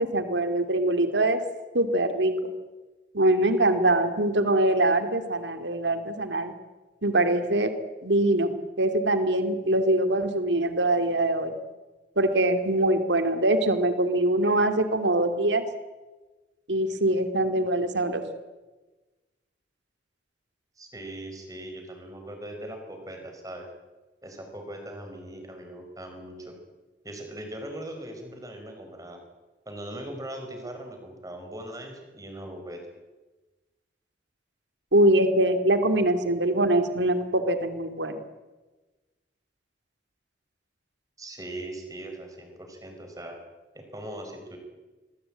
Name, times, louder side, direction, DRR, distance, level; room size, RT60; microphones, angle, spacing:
voice 1, 0.0-1.4 1.7-2.5 3.1-6.5 7.0-7.7 8.0-8.5 8.8-11.5 12.2-15.6 16.7-18.2 34.9-38.2, right 1 dB, 85° right, 8 dB, 2.5 m, -23 dB
voice 2, 20.8-23.7 24.2-26.5 27.0-29.2 29.6-32.9 41.2-43.4 43.7-44.6, right 1 dB, 20° right, 4 dB, 5.2 m, -40 dB
26.0 x 21.5 x 8.9 m, 1.2 s
head